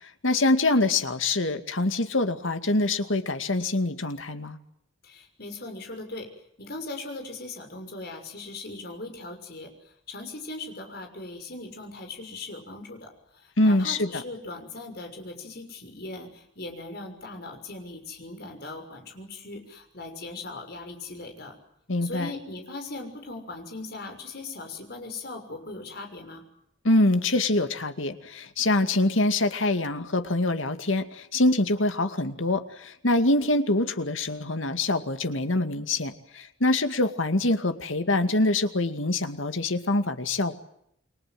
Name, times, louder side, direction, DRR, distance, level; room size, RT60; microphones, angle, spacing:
voice 1, 0.2-4.6 13.6-14.2 21.9-22.3 26.8-40.5, left 2 dB, 85° left, 8 dB, 2.3 m, -25 dB
voice 2, 5.0-21.6 22.0-26.4, left 2 dB, 55° left, 5 dB, 6.4 m, -39 dB
29.5 x 23.5 x 7.8 m, 0.75 s
head